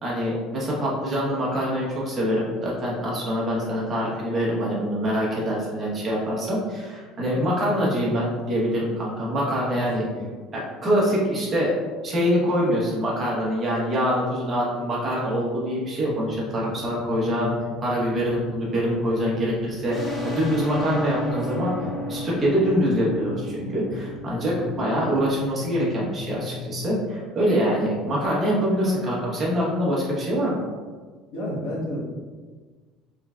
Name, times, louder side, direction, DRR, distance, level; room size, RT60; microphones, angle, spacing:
voice 1, 0.0-10.0 10.5-11.7 12.0-17.5 17.8-21.7 22.1-30.6, equal, 25° right, -5 dB, 1.1 m, -24 dB
sound 1, 16.0-26.9, left 5 dB, 40° left, 0.3 m, -39 dB
sound 2, 19.9-25.2, equal, 15° left, 0.8 m, -33 dB
voice 2, 21.3-21.9 24.6-24.8 28.8-29.2 31.3-32.0, equal, 70° left, -4 dB, 1.1 m, -32 dB
3.7 x 3.3 x 2.4 m, 1.4 s
cardioid pair, 140°, 0 cm